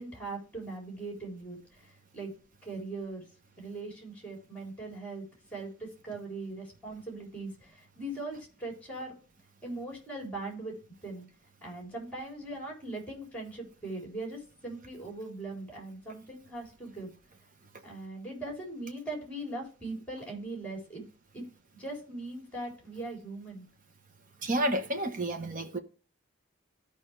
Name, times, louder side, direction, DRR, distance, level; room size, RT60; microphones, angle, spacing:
voice 1, 0.0-2.3 2.6-3.2 3.6-5.2 5.5-9.1 9.6-10.7 11.0-11.2 11.6-17.1 17.8-21.0 21.3-21.4 21.7-23.7, right 2 dB, 5° left, 4.0 m, -40 dB
voice 2, 24.4-25.8, right 1 dB, 40° right, 1.1 m, -30 dB
14.0 x 5.2 x 3.4 m
head